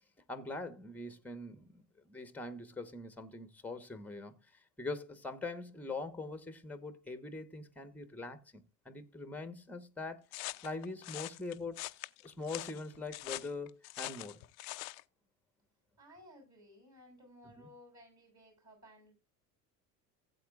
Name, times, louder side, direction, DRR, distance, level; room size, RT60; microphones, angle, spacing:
voice 1, 0.3-11.8 12.2-14.4 17.6-17.7, left 3 dB, 5° left, 1.2 m, -43 dB
sound 1, 10.3-15.0, left 23 dB, 60° left, 0.6 m, -43 dB
voice 2, 16.0-19.1, left 1 dB, 35° right, 7.6 m, -58 dB
16.5 x 8.3 x 2.4 m
figure-of-eight pair, 65°, 47 cm